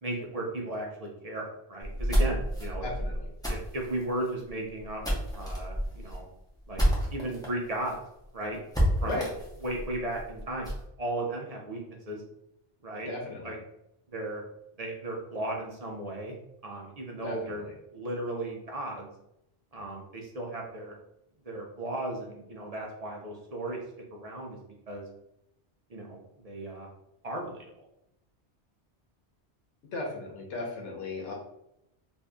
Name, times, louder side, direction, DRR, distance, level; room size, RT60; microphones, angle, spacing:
voice 1, 0.0-2.9 3.5-5.0 5.3-6.2 6.7-6.8 7.1-8.0 8.3-8.6 9.0-9.2 9.6-10.7 11.0-12.2 12.8-13.1 13.4-13.6 14.1-14.4 14.8-16.4 16.6-17.6 17.9-19.1 19.7-20.9 21.4-23.8 24.1-24.6 24.9-25.1 25.9-26.2 26.4-26.9 27.2-27.7, right 1 dB, 45° right, 0 dB, 0.5 m, -35 dB
sound 1, 1.8-7.5 7.8-7.9 8.2-8.3 8.7-10.8, equal, 5° left, 0.7 m, -29 dB
voice 2, 2.8-3.3 9.0-9.3 13.1-13.5 17.2-17.8 29.9-31.3, left 2 dB, 90° left, -1 dB, 1.1 m, -36 dB
2.6 x 2.5 x 3.4 m, 0.82 s
omnidirectional pair, 1.1 m